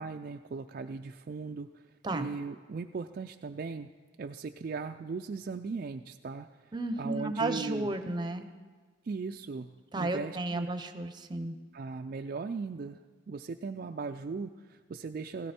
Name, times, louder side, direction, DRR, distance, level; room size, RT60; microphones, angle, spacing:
voice 1, 0.0-3.9 4.2-8.0 9.0-10.7 11.7-13.0 13.3-15.5, right 4 dB, 45° right, 5 dB, 0.3 m, -38 dB
voice 2, 6.7-8.5 9.9-11.6, right 2 dB, 25° right, 8 dB, 0.7 m, -33 dB
16.0 x 16.0 x 4.4 m, 1.5 s
head